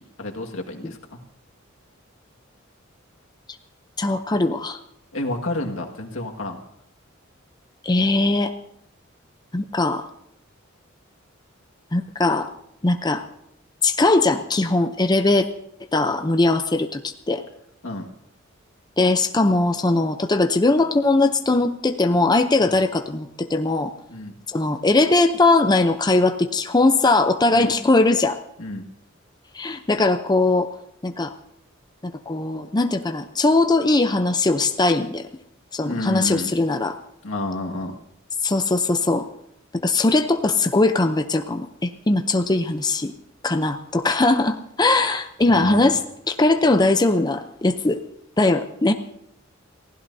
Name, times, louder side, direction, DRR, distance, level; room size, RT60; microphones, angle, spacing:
voice 1, 0.2-1.2 5.1-6.6 17.8-18.1 22.6-22.7 24.1-24.3 27.5-27.7 28.6-28.9 35.8-36.5 37.2-38.0 45.5-45.9, left 1 dB, 85° left, 1 dB, 1.9 m, -30 dB
voice 2, 4.0-4.8 7.8-8.5 9.5-10.1 11.9-12.5 12.8-13.2 13.8-15.5 15.9-17.0 17.3-17.4 19.0-23.9 24.5-28.4 29.5-30.7 31.0-31.3 32.0-35.2 35.7-37.0 38.4-39.3 39.7-43.1 43.4-46.0 46.3-48.0 48.4-48.9, left 2 dB, 20° left, 7 dB, 0.6 m, -20 dB
29.5 x 16.0 x 2.7 m, 0.74 s
head